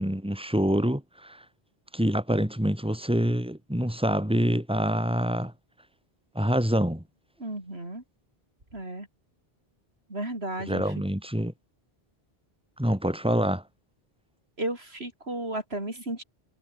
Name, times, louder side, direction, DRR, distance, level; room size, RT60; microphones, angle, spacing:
voice 1, 0.0-1.4 1.9-5.5 6.3-7.0 10.7-11.5 12.8-13.6, equal, 5° right, 4.8 m, -26 dB
voice 2, 7.4-8.0 8.7-9.1 10.1-10.9 14.6-16.2, right 1 dB, 80° right, 6.7 m, -34 dB
omnidirectional pair, 1.0 m